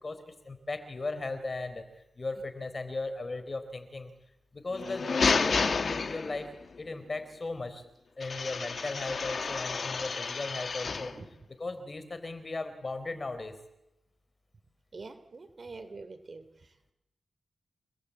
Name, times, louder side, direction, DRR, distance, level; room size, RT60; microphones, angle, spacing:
voice 1, 0.0-1.9 2.2-4.1 4.5-5.0 5.4-6.5 6.8-7.9 8.2-11.1 11.6-13.5, left 3 dB, 40° left, 10 dB, 4.1 m, -37 dB
sound 1, 4.7-6.6 8.2-11.2, left 4 dB, 55° left, 1.6 m, -30 dB
voice 2, 14.9-16.5, right 3 dB, 45° right, 10 dB, 2.8 m, -45 dB
29.5 x 20.0 x 8.7 m, 0.91 s
wide cardioid pair, 85°, 0 cm